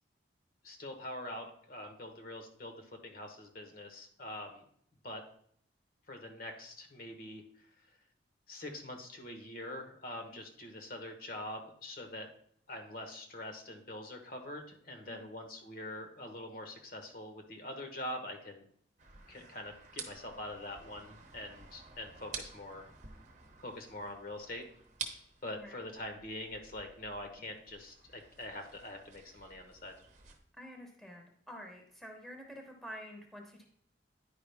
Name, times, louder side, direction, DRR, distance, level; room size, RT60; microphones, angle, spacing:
voice 1, 0.6-4.6 5.0-5.2 6.1-7.7 8.5-12.3 12.7-18.7 19.3-22.9 23.6-24.6 25.4-29.9, left 1 dB, 50° left, 5 dB, 1.1 m, -44 dB
sound 1, 19.0-30.4, right 5 dB, 40° right, 0.9 m, -50 dB
voice 2, 30.6-33.7, equal, ahead, 1 dB, 1.0 m, -49 dB
9.9 x 4.8 x 3.4 m, 0.63 s
head